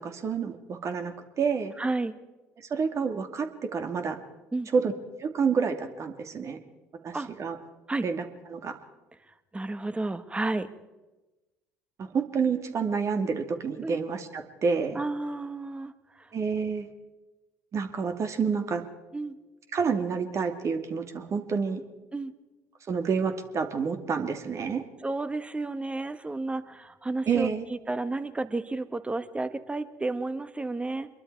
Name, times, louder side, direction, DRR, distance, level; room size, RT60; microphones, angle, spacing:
voice 1, 0.0-1.7 2.6-4.2 4.7-4.9 5.2-6.6 7.0-7.6 8.0-8.2 8.5-8.8 12.0-15.0 16.3-16.9 17.7-18.8 19.7-21.8 22.9-24.8 27.3-27.6, right 5 dB, 40° right, 6 dB, 2.4 m, -28 dB
voice 2, 1.8-2.2 4.5-4.7 7.1-7.3 7.9-8.1 9.3-10.7 13.8-14.0 14.9-16.3 19.1-19.4 22.1-22.3 25.0-31.1, right 2 dB, 15° right, 12 dB, 1.6 m, -32 dB
25.5 x 22.5 x 4.7 m, 1.1 s
hypercardioid pair, 60°, 7 cm